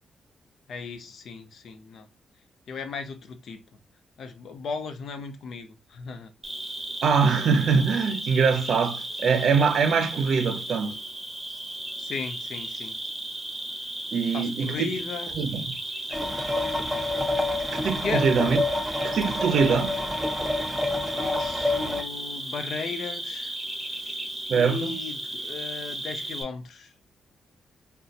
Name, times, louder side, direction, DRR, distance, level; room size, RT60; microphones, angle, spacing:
voice 1, 0.7-2.1 2.7-3.8 4.2-6.3 12.0-13.0 14.3-15.3 16.1-16.2 18.0-18.3 21.0-23.5 23.9-24.2 24.5-26.9, left 5 dB, 65° left, 0.7 m, -36 dB
Cricket, 6.4-26.4, right 1 dB, 20° right, 1.0 m, -35 dB
voice 2, 7.0-11.0 14.1-14.9 15.4-15.8 17.7-18.6 19.0-20.0 24.5-24.9, right 5 dB, 65° right, 0.5 m, -23 dB
sound 1, 16.1-22.0, left 2 dB, 5° right, 0.5 m, -28 dB
4.0 x 2.2 x 2.4 m
wide cardioid pair, 135°, 0 cm